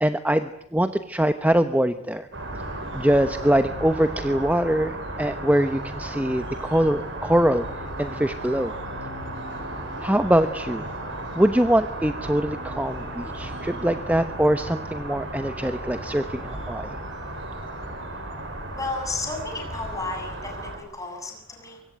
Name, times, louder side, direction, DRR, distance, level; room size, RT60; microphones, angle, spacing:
voice 1, 0.0-2.3 2.9-7.7 8.0-8.7 10.0-10.8 11.3-17.0, right 1 dB, 5° right, 10 dB, 1.0 m, -23 dB
sound 1, 2.3-20.8, right 1 dB, 60° right, 7.7 m, -34 dB
voice 2, 18.8-21.8, left 3 dB, 15° left, 2 dB, 7.8 m, -33 dB
24.5 x 22.5 x 9.3 m, 0.72 s
head